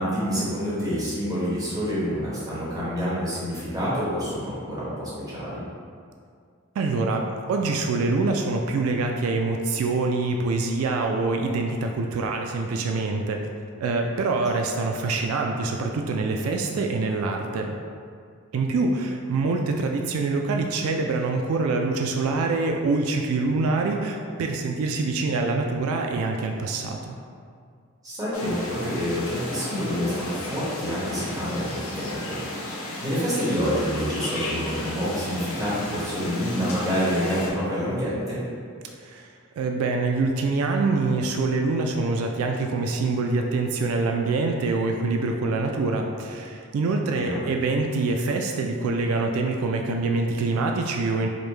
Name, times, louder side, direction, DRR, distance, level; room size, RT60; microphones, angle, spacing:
voice 1, 0.0-5.6 28.0-38.4 47.1-47.4, equal, 15° right, -10 dB, 1.2 m, -27 dB
voice 2, 6.8-13.5 13.8-17.8 18.5-27.2 39.0-39.3 39.6-51.3, right 3 dB, 85° right, 2 dB, 0.3 m, -25 dB
sound 1, 28.3-37.5, left 1 dB, 85° left, 0.7 m, -34 dB
5.0 x 2.2 x 3.1 m, 2.2 s
head